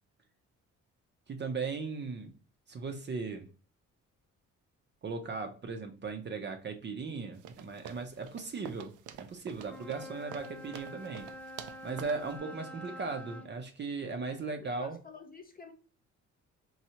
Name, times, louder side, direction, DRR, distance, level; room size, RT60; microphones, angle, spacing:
voice 1, 1.3-2.3 2.7-3.5 5.0-11.3 11.8-15.0, right 4 dB, 35° right, 0.6 m, -37 dB
sound 1, 7.4-12.3, right 9 dB, 85° right, 0.5 m, -48 dB
Wind instrument woodwind instrument, 9.6-13.5, left 1 dB, 5° left, 0.3 m, -46 dB
voice 2, 14.1-15.7, left 4 dB, 30° left, 0.8 m, -50 dB
4.3 x 2.3 x 2.8 m
cardioid pair, 90°, 30 cm